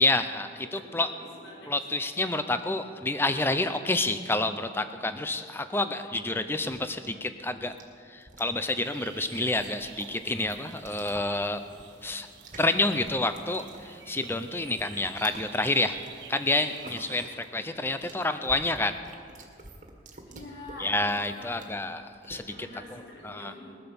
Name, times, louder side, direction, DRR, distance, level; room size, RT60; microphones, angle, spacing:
voice 1, 0.0-1.1 1.7-7.7 8.1-11.6 12.0-12.3 12.6-16.0 16.3-19.0 20.8-23.5, left 2 dB, 10° left, 9 dB, 0.6 m, -29 dB
voice 2, 0.6-1.7 16.8-17.0 20.2-21.7 22.5-23.8, left 1 dB, 80° left, -2 dB, 5.2 m, -46 dB
sound 1, 5.7-22.8, right 2 dB, 40° right, 1.8 m, -50 dB
sound 2, 8.8-17.3, right 7 dB, 70° right, 1.4 m, -49 dB
20.5 x 9.8 x 7.0 m, 2.3 s
head